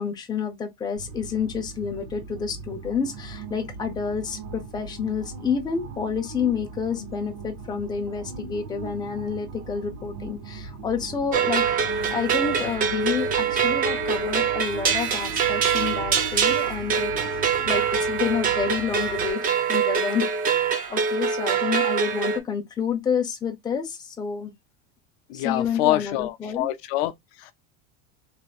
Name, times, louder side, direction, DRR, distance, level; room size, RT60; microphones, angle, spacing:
voice 1, 0.0-11.7 12.1-24.5 25.3-26.7, left 6 dB, 10° left, 0.6 m, -29 dB
sound 1, 1.0-19.3, right 4 dB, 65° right, 2.1 m, -39 dB
sound 2, 11.3-22.4, right 6 dB, 25° right, 0.6 m, -24 dB
voice 2, 25.3-27.1 27.4-27.5, left 15 dB, 65° left, 0.5 m, -25 dB
3.4 x 2.8 x 2.3 m
supercardioid pair, 135°, 33 cm